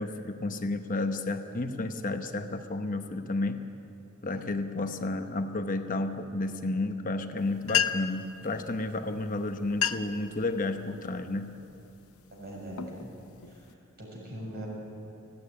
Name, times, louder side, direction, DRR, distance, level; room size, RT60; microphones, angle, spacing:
voice 1, 0.0-3.6 4.2-11.5, left 2 dB, 40° left, 7 dB, 0.9 m, -31 dB
sound 1, 7.4-7.5 7.6-8.3 9.1-9.3 9.6-10.2 10.7-11.1 11.7-12.0 12.5-13.7, left 9 dB, 75° left, 0.8 m, -30 dB
voice 2, 12.3-13.1 13.5-13.7 14.0-14.7, equal, 45° right, -2 dB, 6.4 m, -41 dB
19.0 x 15.5 x 9.8 m, 2.9 s
head